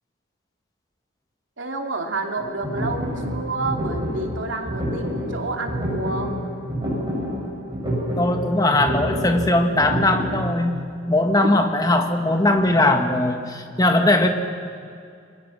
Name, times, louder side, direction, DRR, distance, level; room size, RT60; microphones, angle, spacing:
voice 1, 1.6-6.4 11.4-11.5, right 2 dB, 75° right, 2 dB, 2.8 m, -29 dB
sound 1, 2.4-10.5, equal, 25° right, 7.7 m, -28 dB
voice 2, 8.2-14.3, left 1 dB, 20° left, 5 dB, 1.6 m, -20 dB
28.5 x 21.5 x 6.1 m, 2.4 s
head